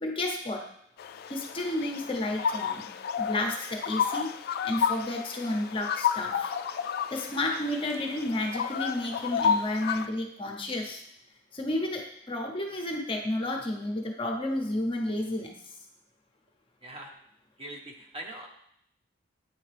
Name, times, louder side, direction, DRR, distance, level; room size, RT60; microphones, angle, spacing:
voice 1, 0.0-0.7 1.3-2.9 3.2-4.3 4.6-6.5 7.1-11.0 11.5-15.5, left 1 dB, 30° left, 2 dB, 0.7 m, -31 dB
Australian Magpie - Gymnorhina Tibicen - Carroling, 1.0-10.1, left 7 dB, 55° left, 0.3 m, -31 dB
voice 2, 17.6-18.5, right 1 dB, 30° right, 0 dB, 0.9 m, -41 dB
8.7 x 3.5 x 3.3 m, 0.69 s
head